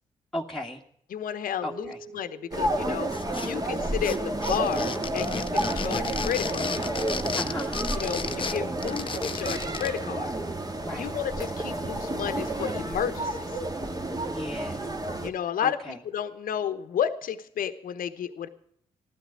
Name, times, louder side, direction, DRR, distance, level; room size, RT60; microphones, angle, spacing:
voice 1, 0.3-0.8 1.6-2.0 7.4-7.8 10.8-11.1 14.3-14.9 15.6-16.0, left 1 dB, ahead, -2 dB, 1.7 m, -35 dB
voice 2, 1.1-3.1 3.4-6.8 7.9-10.3 10.9-13.6 15.2-18.5, left 9 dB, 65° left, 10 dB, 1.0 m, -32 dB
sound 1, 1.6-4.2, right 4 dB, 65° right, 1.4 m, -48 dB
sound 2, 2.5-15.3, right 1 dB, 25° right, 1.9 m, -30 dB
sound 3, 3.1-3.7 4.0-10.0, left 5 dB, 35° left, 0.8 m, -34 dB
15.0 x 12.5 x 6.3 m, 0.67 s
hypercardioid pair, 40°, 15 cm